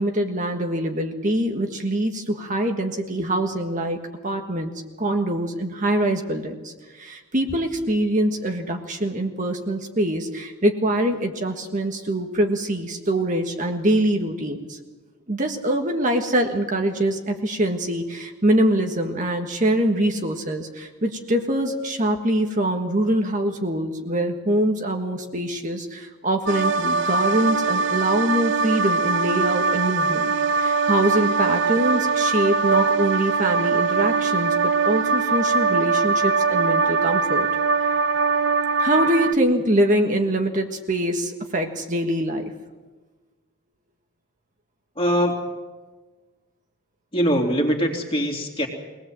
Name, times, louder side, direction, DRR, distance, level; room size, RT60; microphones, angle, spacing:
voice 1, 0.0-4.7 5.0-14.8 15.3-34.5 34.8-37.5 38.8-42.4, right 1 dB, 35° right, 3 dB, 1.6 m, -24 dB
sound 1, 26.5-39.3, right 4 dB, 55° right, 0.6 m, -22 dB
voice 2, 44.9-45.3 47.1-48.7, equal, 25° left, 1 dB, 3.0 m, -22 dB
23.0 x 19.0 x 7.7 m, 1.3 s
head